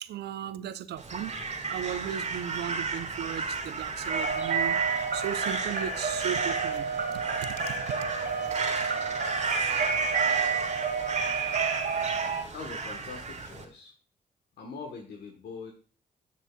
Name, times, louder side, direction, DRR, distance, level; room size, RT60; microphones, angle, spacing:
voice 1, 0.0-1.3 1.7-4.8 5.1-6.9 7.4-7.8, right 10 dB, 75° right, 0.5 m, -36 dB
Crow, 1.0-13.6, right 4 dB, 45° right, 1.8 m, -34 dB
sound 1, 4.1-12.4, right 5 dB, 60° right, 1.9 m, -30 dB
voice 2, 12.5-13.9 14.6-15.7, left 4 dB, 75° left, 1.2 m, -42 dB
10.0 x 7.4 x 2.3 m
supercardioid pair, 50°, 17 cm